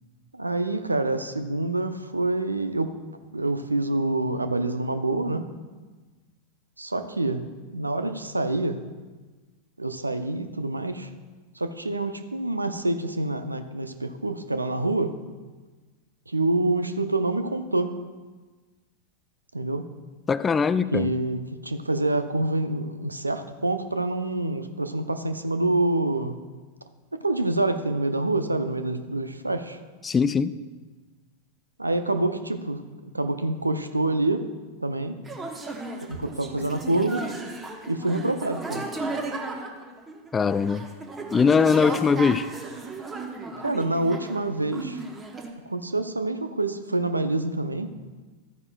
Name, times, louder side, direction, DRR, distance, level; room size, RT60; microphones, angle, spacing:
voice 1, 0.3-3.0 3.3-5.5 6.8-7.5 7.7-8.8 9.8-11.1 11.6-15.2 16.3-18.0 19.5-19.9 20.9-26.4 27.1-29.8 31.8-34.5 34.8-35.2 36.0-37.3 37.9-38.8 43.6-45.0 45.7-47.9, right 2 dB, 80° right, 10 dB, 0.5 m, -27 dB
voice 2, 20.3-21.1 30.0-30.6 40.3-40.9 41.3-42.5, left 5 dB, 15° left, 15 dB, 0.3 m, -21 dB
sound 1, 35.3-44.4 44.7-45.5, right 3 dB, 15° right, 1.1 m, -35 dB
13.5 x 9.5 x 2.3 m, 1.3 s
figure-of-eight pair, 90°, 0 cm